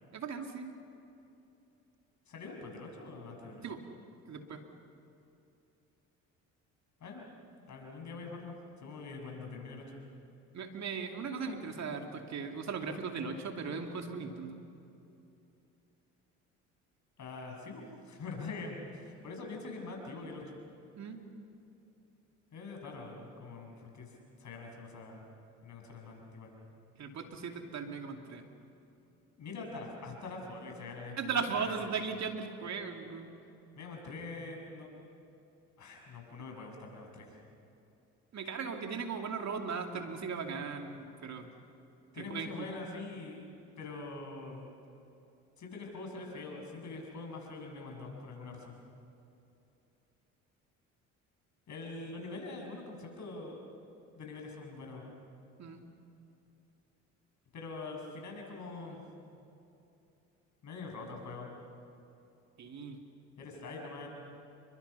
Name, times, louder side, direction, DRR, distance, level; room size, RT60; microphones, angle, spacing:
voice 1, 0.1-0.8 3.6-3.8 4.3-4.6 10.5-14.6 21.0-21.2 27.0-28.4 31.2-33.3 38.3-41.5 42.2-42.7 55.6-55.8 62.6-63.0, right 5 dB, 55° right, 4 dB, 2.7 m, -38 dB
voice 2, 2.3-3.6 7.0-7.2 7.6-10.0 17.2-20.6 22.5-24.1 24.4-25.2 25.6-26.5 29.4-31.8 33.8-35.0 35.8-37.4 42.1-43.5 43.8-44.7 45.6-48.7 51.7-53.6 54.1-55.1 57.5-59.0 60.6-61.5 63.4-64.1, left 3 dB, 55° left, 1 dB, 6.9 m, -44 dB
29.5 x 23.5 x 5.7 m, 2.8 s
supercardioid pair, 65°, 34 cm